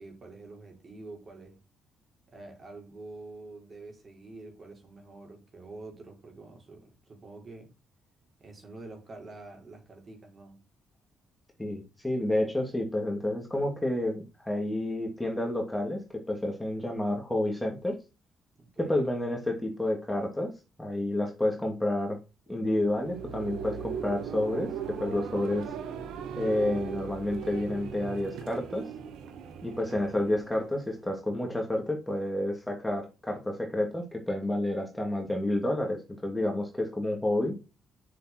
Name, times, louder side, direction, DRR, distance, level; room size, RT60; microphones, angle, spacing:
voice 1, 0.0-1.6 2.3-7.7 8.4-10.6 18.6-19.0, right 2 dB, 40° right, 2 dB, 4.4 m, -47 dB
voice 2, 11.6-16.0 16.3-18.0 18.8-20.5 20.8-22.2 22.5-25.7 26.4-28.8 29.6-37.6, left 1 dB, 10° left, 1 dB, 2.4 m, -30 dB
sound 1, 22.6-31.2, right 7 dB, 85° right, 1.5 m, -39 dB
7.7 x 6.6 x 4.5 m, 0.29 s
cardioid pair, 90°, 0 cm